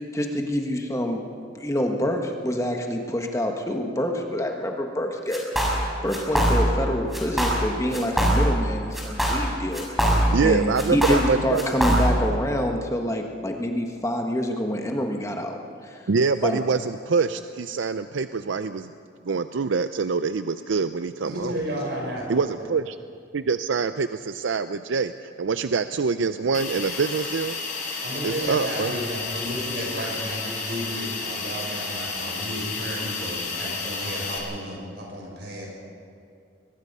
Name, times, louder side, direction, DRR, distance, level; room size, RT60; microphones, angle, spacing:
voice 1, 0.1-1.2 1.5-16.0 16.4-16.6, equal, 15° left, 2 dB, 1.4 m, -27 dB
sound 1, 5.3-5.8 6.1-6.8 7.1-7.7 7.9-8.7 8.9-10.5 10.8-12.3, equal, ahead, 4.6 m, -22 dB
voice 2, 10.3-11.6 16.1-18.9 19.2-21.6 22.3-23.0 23.3-27.6 28.2-29.0, right 4 dB, 85° right, 11 dB, 0.5 m, -25 dB
voice 3, 21.3-22.2 28.0-35.7, equal, 60° right, -2 dB, 6.8 m, -32 dB
Hiss, 26.5-34.4, left 4 dB, 45° left, 4.2 m, -32 dB
23.0 x 21.0 x 5.5 m, 2.4 s
head